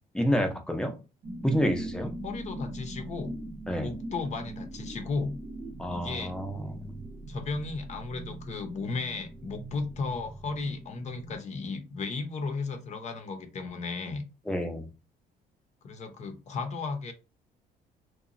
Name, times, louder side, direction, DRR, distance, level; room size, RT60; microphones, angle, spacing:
voice 1, 0.1-0.9 1.4-2.1 3.7-3.9 5.8-6.9 14.5-14.8, equal, 5° left, 0.5 m, -28 dB
sound 1, 1.2-11.4, right 1 dB, 55° right, 0.7 m, -41 dB
voice 2, 2.0-3.4 3.8-5.4 5.9-6.4 7.3-14.2 15.8-17.1, left 4 dB, 45° left, 0.6 m, -35 dB
2.9 x 2.2 x 2.5 m
cardioid pair, 110°, 17 cm